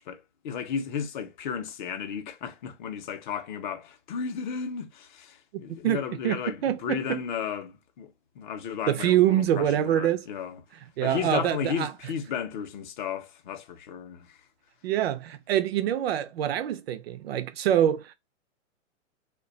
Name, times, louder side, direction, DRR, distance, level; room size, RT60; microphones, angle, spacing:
voice 1, 0.0-10.6 11.0-14.4, left 7 dB, 40° left, 0.5 m, -34 dB
voice 2, 5.5-6.0 6.2-7.2 8.9-10.2 11.0-11.9 14.8-18.1, right 11 dB, 55° right, 0.4 m, -25 dB
2.6 x 2.2 x 3.6 m
hypercardioid pair, 155°, 38 cm